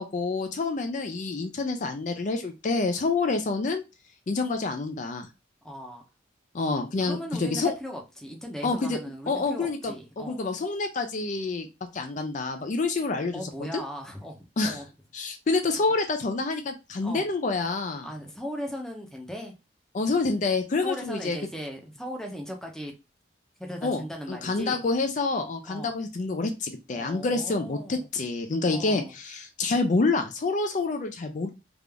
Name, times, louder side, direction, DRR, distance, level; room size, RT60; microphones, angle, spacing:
voice 1, 0.0-3.8 4.3-5.3 6.5-7.7 8.6-9.0 9.3-11.7 11.9-13.8 14.6-14.8 15.1-18.1 19.9-21.4 23.8-24.0 24.3-31.5, left 3 dB, 40° left, 0.4 m, -27 dB
voice 2, 5.6-6.0 7.0-10.4 13.3-14.9 17.0-17.3 18.0-19.5 20.8-22.9 23.6-24.8 25.6-25.9 26.9-28.1 28.7-29.1, equal, 5° left, 0.6 m, -38 dB
3.4 x 2.5 x 3.3 m
head